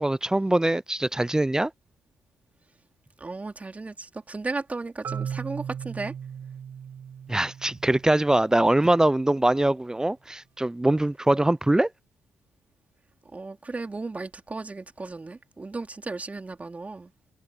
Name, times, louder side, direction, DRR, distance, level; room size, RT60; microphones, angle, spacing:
voice 1, 0.0-1.7 7.3-11.9, right 1 dB, 10° right, 0.5 m, -23 dB
voice 2, 3.2-6.1 13.2-17.1, right 3 dB, 25° right, 2.8 m, -35 dB
Marimba xylophone, 5.0-8.9, right 8 dB, 55° right, 4.8 m, -37 dB
hypercardioid pair, 40°, 5 cm